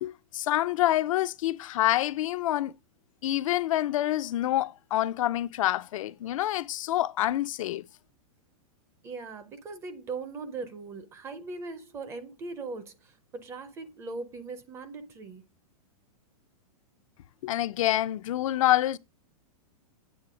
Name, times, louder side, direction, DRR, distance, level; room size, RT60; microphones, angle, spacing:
voice 1, 0.0-2.7 3.2-7.8 17.4-19.0, left 14 dB, 60° left, 0.4 m, -27 dB
voice 2, 9.0-15.4, right 4 dB, 15° right, 0.5 m, -39 dB
8.4 x 3.2 x 4.9 m
supercardioid pair, 165°, 19 cm